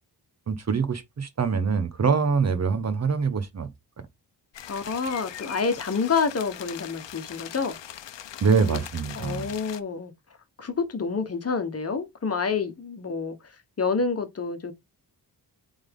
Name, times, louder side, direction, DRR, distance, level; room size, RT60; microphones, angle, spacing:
voice 1, 0.5-3.7 8.4-9.5, right 5 dB, 40° right, 0.9 m, -24 dB
sound 1, 4.5-9.8, left 11 dB, 85° left, 0.9 m, -41 dB
voice 2, 4.7-7.8 8.7-8.8 9.1-10.1 10.6-13.4 13.8-14.7, left 5 dB, 35° left, 1.3 m, -28 dB
8.7 x 3.7 x 3.7 m
wide cardioid pair, 175°, 42 cm